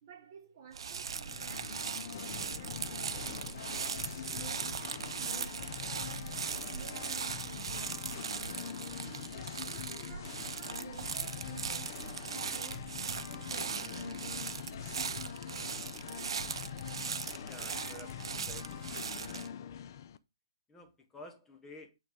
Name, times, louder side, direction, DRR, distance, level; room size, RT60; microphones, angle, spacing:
voice 1, 0.0-4.0 4.3-8.4 9.0-14.6, right 7 dB, 40° right, 1.1 m, -54 dB
sound 1, 0.7-19.5, right 6 dB, 70° right, 0.6 m, -39 dB
Singing, 1.0-20.2, left 9 dB, 45° left, 0.6 m, -44 dB
voice 2, 17.4-18.8 19.1-19.5 20.7-22.0, left 1 dB, 10° left, 0.9 m, -52 dB
9.0 x 3.7 x 4.7 m
hypercardioid pair, 160°, 3 cm